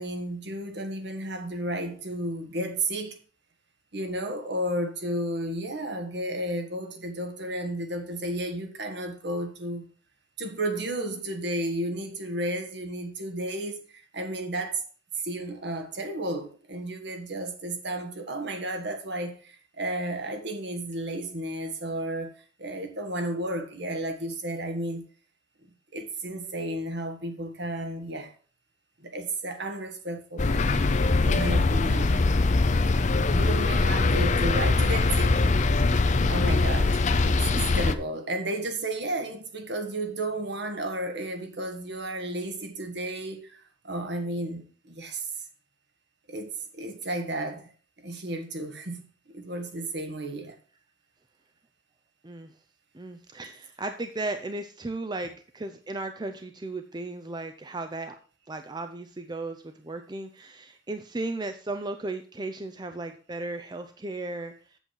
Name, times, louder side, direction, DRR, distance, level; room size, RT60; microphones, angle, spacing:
voice 1, 0.0-3.2 3.9-9.9 10.4-14.8 15.2-22.3 22.6-25.0 25.9-28.3 29.0-30.5 31.2-32.2 33.3-35.5 36.3-37.0 37.3-45.3 46.3-47.7 48.0-50.6, right 1 dB, 60° right, 1.6 m, -33 dB
sound 1, 30.4-38.0, left 3 dB, 40° left, 0.5 m, -22 dB
voice 2, 52.9-58.2 58.5-64.5, right 2 dB, 20° right, 0.5 m, -35 dB
8.0 x 7.7 x 4.6 m
head